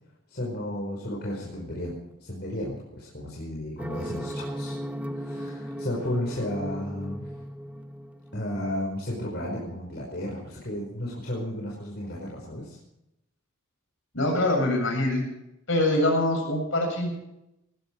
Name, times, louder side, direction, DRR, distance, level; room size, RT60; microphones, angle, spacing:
voice 1, 0.3-4.8 5.1-7.3 8.3-12.8, left 1 dB, 50° left, -3 dB, 5.1 m, -33 dB
sound 1, 3.8-8.8, equal, 5° right, 0.7 m, -36 dB
voice 2, 14.1-15.2 15.7-17.2, left 1 dB, 65° left, 2 dB, 7.5 m, -24 dB
19.0 x 14.5 x 4.8 m, 0.84 s
head